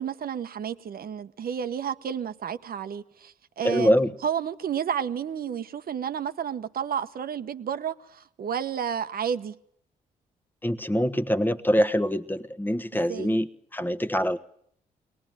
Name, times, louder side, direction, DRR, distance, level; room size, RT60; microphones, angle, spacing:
voice 1, 0.0-3.9 4.2-9.6 12.9-13.3, right 8 dB, 60° right, 1.1 m, -31 dB
voice 2, 3.6-4.1 10.6-14.4, equal, 10° left, 1.3 m, -24 dB
22.5 x 19.0 x 9.2 m
supercardioid pair, 55°, 17 cm